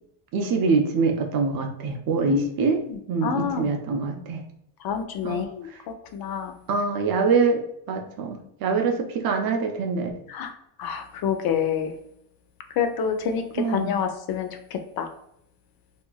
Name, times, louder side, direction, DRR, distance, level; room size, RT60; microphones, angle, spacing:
voice 1, 0.3-2.8 3.1-4.4 5.2-5.4 6.7-7.6 7.9-10.1 13.6-13.9, right 4 dB, 50° right, 4 dB, 0.6 m, -24 dB
voice 2, 3.2-3.7 4.8-5.7 6.1-6.5 10.3-10.5 10.8-11.9 12.8-13.4 13.7-14.5 15.0-15.1, left 7 dB, 50° left, 6 dB, 0.5 m, -27 dB
2.7 x 2.5 x 2.3 m, 0.75 s
supercardioid pair, 100°, 48 cm